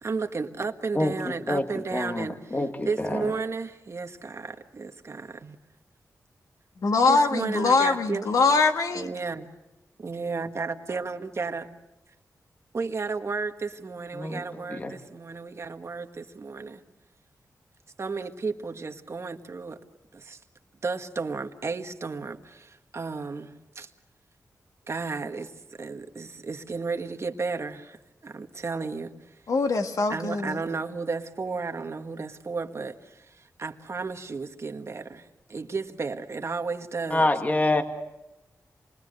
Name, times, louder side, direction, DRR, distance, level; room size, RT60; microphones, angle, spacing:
voice 1, 0.0-2.6 2.8-5.6 7.1-8.3 8.9-9.5 10.0-11.7 12.7-16.8 18.0-19.8 20.1-20.4 20.8-23.9 24.9-29.1 30.1-37.3, right 4 dB, 50° right, 1.6 m, -33 dB
voice 2, 1.0-1.7 1.9-3.2 14.1-14.4 14.7-14.9 37.1-37.8, left 2 dB, 25° left, 1.9 m, -26 dB
voice 3, 6.8-9.1 29.5-30.6, left 4 dB, 70° left, 1.8 m, -23 dB
28.0 x 21.5 x 6.6 m
wide cardioid pair, 80°, 6 cm